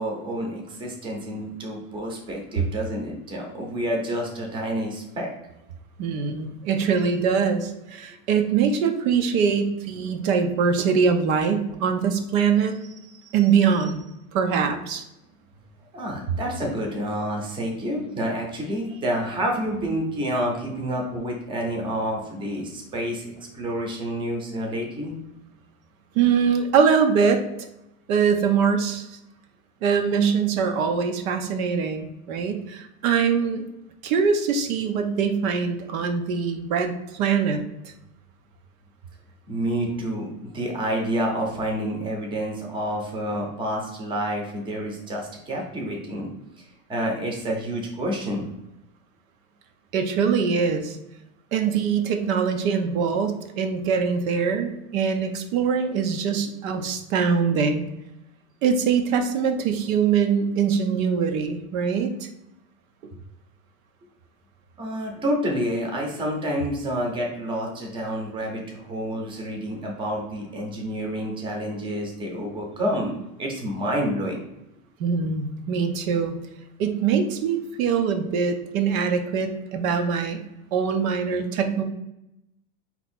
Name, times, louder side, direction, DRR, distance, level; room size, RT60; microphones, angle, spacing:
voice 1, 0.0-5.3 15.9-23.3 23.5-25.2 39.5-46.3 46.6-46.7 46.9-48.5 64.8-73.1 73.4-74.4, equal, 10° right, 0 dB, 0.7 m, -28 dB
voice 2, 6.0-12.8 13.3-14.0 14.3-15.0 19.7-19.8 26.1-27.4 28.1-29.2 29.8-33.6 34.0-37.9 49.9-51.0 51.5-57.8 58.6-62.3 75.0-76.4 76.8-80.4 80.7-81.8, right 6 dB, 70° right, 6 dB, 0.7 m, -23 dB
3.9 x 2.9 x 4.2 m, 0.88 s
supercardioid pair, 155°, 42 cm